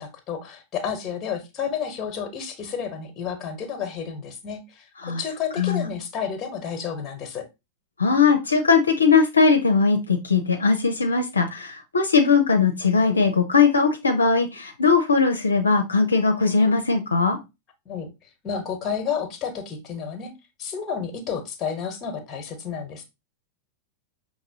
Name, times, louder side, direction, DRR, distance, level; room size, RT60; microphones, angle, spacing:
voice 1, 0.0-7.4 17.8-18.1 18.4-20.3 20.6-23.0, left 7 dB, 30° left, 7 dB, 1.2 m, -31 dB
voice 2, 5.6-5.9 8.0-17.4, left 5 dB, 75° left, 4 dB, 0.6 m, -20 dB
5.9 x 2.9 x 2.8 m, 0.24 s
figure-of-eight pair, 90°, 0 cm